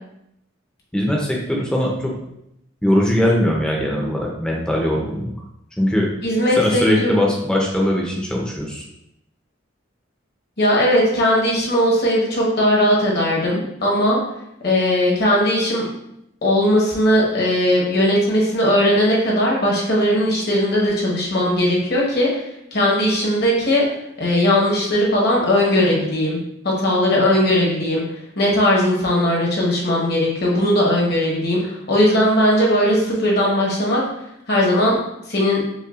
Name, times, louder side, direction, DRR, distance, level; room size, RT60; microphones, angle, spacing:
voice 1, 0.9-2.1 2.8-5.3 5.8-6.1 6.6-8.8, equal, 5° left, -2 dB, 0.6 m, -20 dB
voice 2, 6.2-7.2 10.6-14.2 14.6-15.9 16.4-22.3 22.7-23.8 24.2-26.4 26.6-28.0 28.4-34.0 34.5-34.9 35.3-35.6, left 1 dB, 55° left, -3 dB, 1.1 m, -18 dB
5.4 x 2.2 x 2.4 m, 0.80 s
head